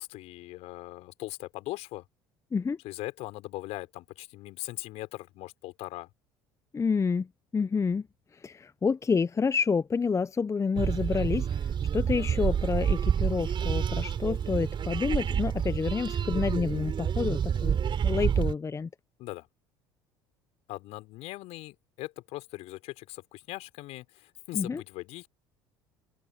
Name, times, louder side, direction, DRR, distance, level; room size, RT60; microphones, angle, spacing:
voice 1, 0.0-2.0 2.8-6.1 19.2-19.5 20.7-25.3, left 18 dB, 65° left, 4.9 m, -40 dB
voice 2, 6.7-7.3 7.5-8.1 8.3-17.8 18.0-18.9 24.5-24.8, left 5 dB, 25° left, 1.0 m, -29 dB
sound 1, 10.8-18.6, right 8 dB, 40° right, 5.9 m, -28 dB
open air
hypercardioid pair, 65°, 12 cm